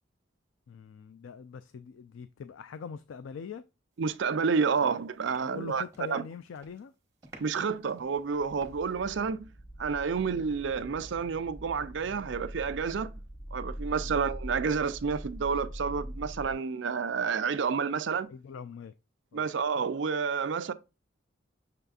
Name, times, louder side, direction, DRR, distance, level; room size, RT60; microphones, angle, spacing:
voice 1, 0.7-3.6 5.4-6.9 14.0-14.2 18.3-18.9 19.3-19.5, left 6 dB, 80° left, 0.3 m, -43 dB
voice 2, 4.0-5.8 6.1-6.2 7.4-9.5 9.8-13.1 13.5-18.3 19.3-20.7, right 5 dB, 70° right, 0.4 m, -29 dB
sound 1, 4.1-4.3 4.6-6.2 6.5-6.9 7.2-9.1, right 2 dB, 15° right, 1.3 m, -55 dB
sound 2, 8.2-16.5, equal, ahead, 0.4 m, -43 dB
6.7 x 3.4 x 2.3 m
head